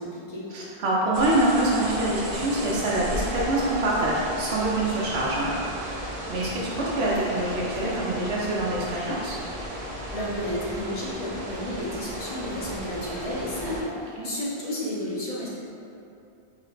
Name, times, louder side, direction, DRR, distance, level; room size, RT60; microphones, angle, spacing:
voice 1, 0.0-0.5 10.1-15.5, left 1 dB, 40° left, -7 dB, 0.7 m, -32 dB
voice 2, 0.5-6.0 6.3-9.4 14.2-14.3, right 1 dB, 85° right, -5 dB, 0.9 m, -25 dB
sound 1, 1.1-13.8, right 1 dB, 45° right, 0.6 m, -34 dB
3.7 x 2.1 x 3.8 m, 2.7 s
omnidirectional pair, 1.1 m